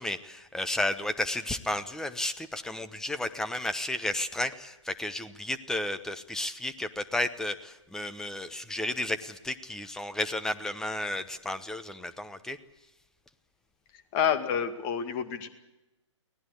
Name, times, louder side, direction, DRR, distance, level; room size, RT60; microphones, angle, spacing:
voice 1, 0.0-12.6, left 1 dB, 5° left, 11 dB, 1.0 m, -33 dB
voice 2, 14.1-15.5, left 8 dB, 30° left, 8 dB, 2.2 m, -28 dB
24.0 x 18.5 x 8.2 m, 1.0 s
figure-of-eight pair, 125°, 16 cm